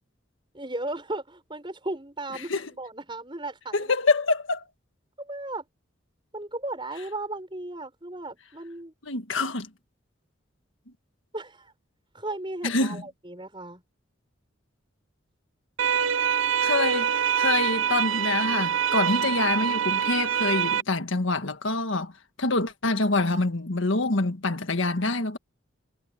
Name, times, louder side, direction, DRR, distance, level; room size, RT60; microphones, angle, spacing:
voice 1, 0.5-3.9 5.2-5.6 6.3-8.9 11.3-11.7 12.1-13.8, right 2 dB, 25° right, 6.1 m, -35 dB
voice 2, 3.7-4.6 9.0-9.7 12.6-13.0 16.6-22.1 22.4-25.4, left 3 dB, 75° left, 1.6 m, -26 dB
sound 1, 15.8-20.8, right 8 dB, 85° right, 0.6 m, -25 dB
head